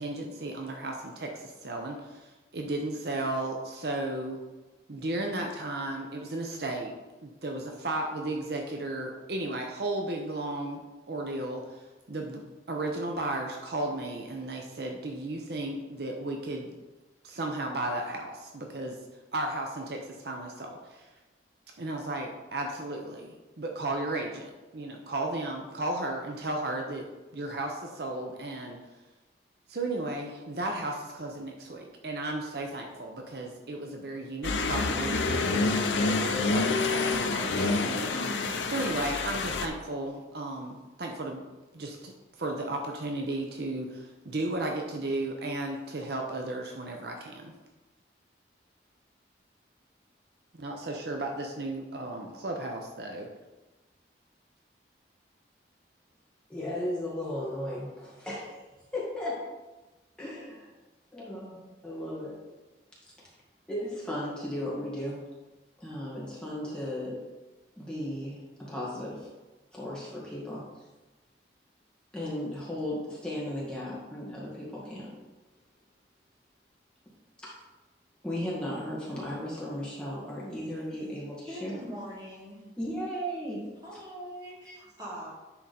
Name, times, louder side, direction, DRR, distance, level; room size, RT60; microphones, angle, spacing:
voice 1, 0.0-4.4 4.9-6.9 7.2-16.7 17.2-19.0 19.3-21.1 21.8-27.0 27.3-28.8 29.7-41.4 41.7-47.5 50.5-53.3, right 2 dB, 60° right, 2 dB, 0.7 m, -34 dB
sound 1, 34.4-39.7, left 3 dB, 80° left, 0.6 m, -27 dB
voice 2, 56.5-58.6 58.9-59.5 60.2-60.7 61.1-62.4 63.7-65.2 65.8-67.2 67.8-69.3 69.7-70.7 72.1-75.2 77.4-77.6 78.2-81.8 82.8-83.7 83.9-84.0 84.7-84.8, left 1 dB, 5° left, -7 dB, 1.9 m, -35 dB
voice 3, 81.5-82.6 83.8-85.3, equal, 20° right, -6 dB, 2.1 m, -42 dB
9.9 x 3.8 x 4.3 m, 1.1 s
head